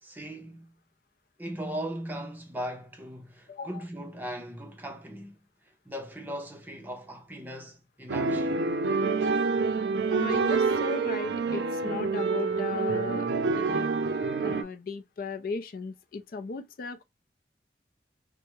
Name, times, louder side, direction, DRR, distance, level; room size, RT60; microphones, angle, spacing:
voice 1, 0.0-0.7 1.4-5.4 5.9-8.6, equal, 10° right, 0.6 m, -38 dB
voice 2, 3.5-3.8 10.1-13.9 14.4-17.0, left 4 dB, 55° left, 0.4 m, -36 dB
sound 1, 8.1-14.6, right 4 dB, 75° right, 0.5 m, -27 dB
3.3 x 2.0 x 3.0 m
head